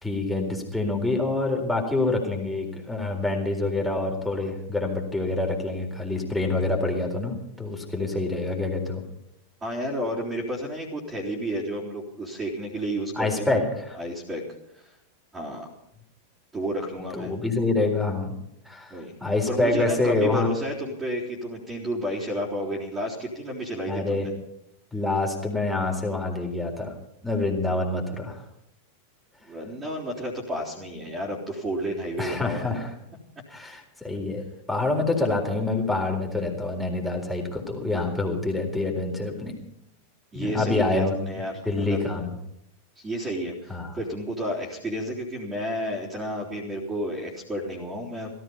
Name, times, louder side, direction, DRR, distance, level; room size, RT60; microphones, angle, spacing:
voice 1, 0.0-9.0 13.2-14.0 17.1-18.4 18.7-20.5 23.9-24.3 24.9-26.9 27.2-28.4 32.2-32.9 33.5-39.5 40.3-41.2 41.6-42.3 43.7-43.9, left 2 dB, 5° left, 1 dB, 4.0 m, -26 dB
voice 2, 9.6-13.6 13.9-14.4 14.7-14.9 15.3-15.7 16.5-17.3 18.9-19.1 19.5-24.3 29.4-32.7 40.3-42.0 43.0-48.3, equal, 15° right, -6 dB, 3.8 m, -31 dB
17.5 x 14.5 x 5.5 m, 0.80 s
figure-of-eight pair, 90°, 0 cm